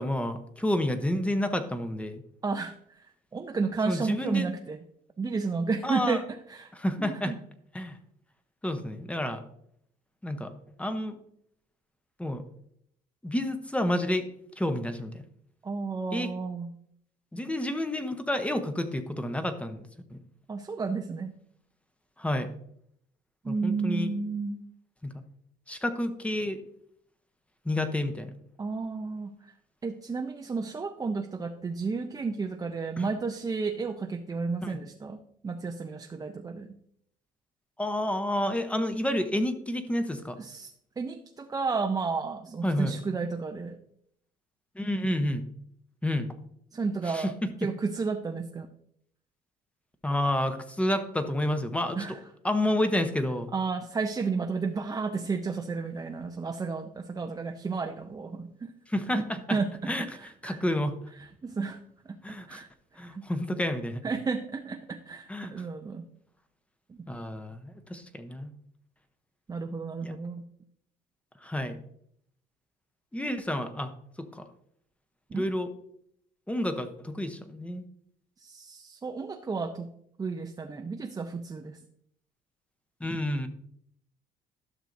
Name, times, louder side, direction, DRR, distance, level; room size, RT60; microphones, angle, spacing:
voice 1, 0.0-2.2 3.9-4.5 5.8-6.2 6.7-7.3 7.7-8.0 8.6-9.4 10.2-10.5 10.8-11.2 12.2-12.4 13.2-14.3 14.6-15.2 16.1-16.3 17.3-20.2 22.2-22.5 23.5-24.1 25.0-25.2 25.7-26.6 27.6-28.3 33.0-33.1 34.6-34.8 37.8-40.4 42.6-42.9 44.7-45.4 46.0-46.3 47.1-47.5 50.0-52.2 52.4-53.5 58.9-59.6 59.9-60.1 60.4-61.0 62.2-62.6 63.0-64.0 65.3-65.5 67.1-68.5 70.0-70.1 71.4-71.8 73.1-73.9 74.2-74.5 75.3-75.7 76.5-77.8 83.0-83.5, left 1 dB, 5° left, 9 dB, 0.8 m, -30 dB
voice 2, 2.4-4.8 5.2-6.2 6.5-6.7 7.0-7.4 15.6-16.7 20.5-21.3 23.4-24.6 28.6-29.5 29.8-36.8 40.4-43.8 46.7-47.3 47.6-48.7 52.0-52.2 53.5-58.7 59.1-59.2 59.5-60.6 61.2-61.8 62.1-62.2 62.5-62.7 63.1-63.2 64.0-66.1 66.9-67.1 69.5-70.5 75.3-75.5 78.4-79.9 80.2-81.8, right 4 dB, 20° right, 4 dB, 0.5 m, -32 dB
12.0 x 6.3 x 2.6 m, 0.69 s
cardioid pair, 110°, 17 cm